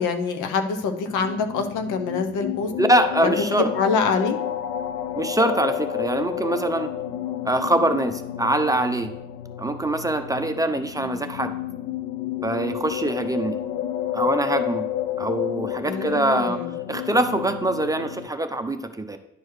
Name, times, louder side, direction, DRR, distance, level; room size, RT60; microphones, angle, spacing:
voice 1, 0.0-2.7 3.2-4.4 15.8-16.7, left 5 dB, 90° left, 6 dB, 0.8 m, -25 dB
sound 1, 1.0-18.3, left 11 dB, 55° left, 0.6 m, -30 dB
voice 2, 2.8-3.7 5.2-6.9 7.4-9.1 9.6-11.5 12.4-13.6 14.1-14.9 15.2-16.6 16.9-19.2, right 1 dB, 10° right, 8 dB, 0.6 m, -23 dB
11.0 x 4.6 x 3.2 m, 0.82 s
cardioid pair, 90°, 30 cm